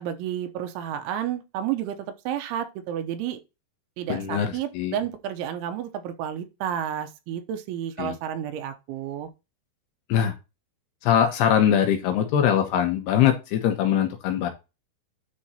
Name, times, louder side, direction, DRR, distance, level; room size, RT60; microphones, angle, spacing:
voice 1, 0.0-2.0 2.3-3.4 4.0-9.3, right 10 dB, 85° right, 3.3 m, -31 dB
voice 2, 4.1-5.0 8.0-8.1 10.1-10.4 11.0-14.5, left 9 dB, 75° left, 2.7 m, -22 dB
9.8 x 3.8 x 4.2 m
omnidirectional pair, 5.5 m